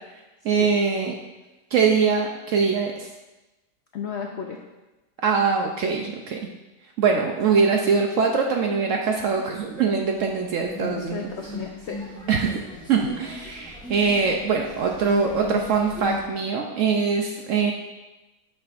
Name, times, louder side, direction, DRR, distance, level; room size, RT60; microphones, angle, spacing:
voice 1, 0.4-1.1 1.7-3.1 5.2-6.4 7.0-11.3 12.3-12.6 12.9-17.7, right 5 dB, 70° right, 2 dB, 0.7 m, -22 dB
voice 2, 3.9-4.6 10.7-12.2, left 6 dB, 85° left, 2 dB, 0.5 m, -34 dB
sound 1, 9.3-9.9 10.2-16.2, left 2 dB, 5° left, 0.8 m, -37 dB
8.7 x 5.6 x 2.5 m, 1.1 s
omnidirectional pair, 1.8 m